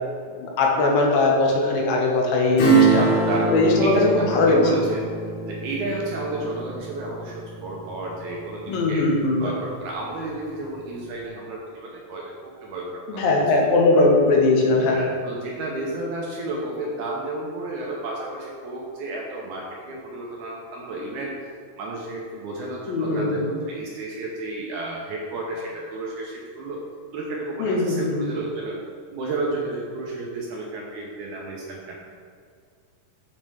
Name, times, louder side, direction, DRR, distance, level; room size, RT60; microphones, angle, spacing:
voice 1, 0.4-3.1 3.5-4.9 8.7-9.4 13.1-15.0 22.9-23.5 27.6-28.3, left 2 dB, 80° left, 0 dB, 2.7 m, -20 dB
Acoustic guitar / Strum, 2.6-8.8 9.2-9.3, right 4 dB, 55° left, 2.7 m, -24 dB
voice 2, 3.0-5.1 5.5-9.1 9.4-13.4 13.9-14.1 14.9-21.3 21.8-26.8 27.1-28.8 29.1-32.0, right 2 dB, 75° right, -3 dB, 1.9 m, -32 dB
7.6 x 4.2 x 4.9 m, 2.2 s
omnidirectional pair, 4.1 m